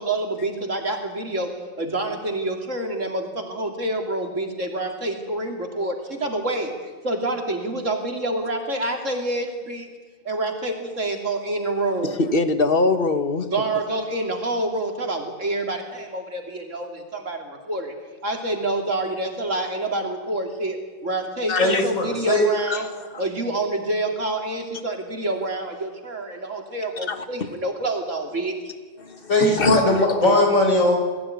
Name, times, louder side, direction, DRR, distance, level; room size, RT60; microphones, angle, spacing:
voice 1, 0.0-1.5 1.8-9.9 10.2-12.2 13.5-17.9 18.2-20.8 21.0-22.9 23.2-28.5, right 2 dB, 70° right, 3 dB, 3.3 m, -27 dB
voice 2, 12.3-13.5 21.5-21.8 22.7-22.8 27.1-27.2 29.4-30.0, left 3 dB, 45° left, 9 dB, 1.6 m, -22 dB
voice 3, 21.6-22.4 29.3-31.0, left 2 dB, 85° left, 2 dB, 5.0 m, -19 dB
21.5 x 15.5 x 9.7 m, 1.4 s
omnidirectional pair, 1.4 m